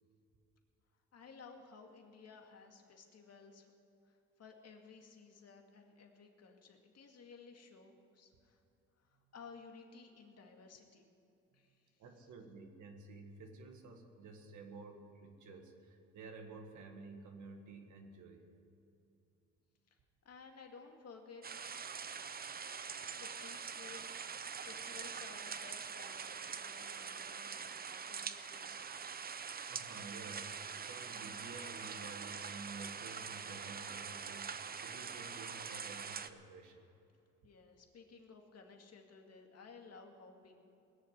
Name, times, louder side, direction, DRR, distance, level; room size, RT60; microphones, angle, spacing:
voice 1, 1.1-3.7 4.0-8.6 9.0-11.0 11.5-11.9 20.2-21.4 22.8-24.0 24.3-27.8 28.0-28.9 37.4-40.5, left 5 dB, 55° left, 3 dB, 2.2 m, -56 dB
voice 2, 12.0-18.4 29.7-36.9, right 3 dB, 75° right, 3 dB, 1.9 m, -52 dB
sound 1, 21.4-36.3, right 6 dB, 30° right, 0.7 m, -44 dB
20.0 x 7.0 x 9.3 m, 2.7 s
cardioid pair, 90°, 30 cm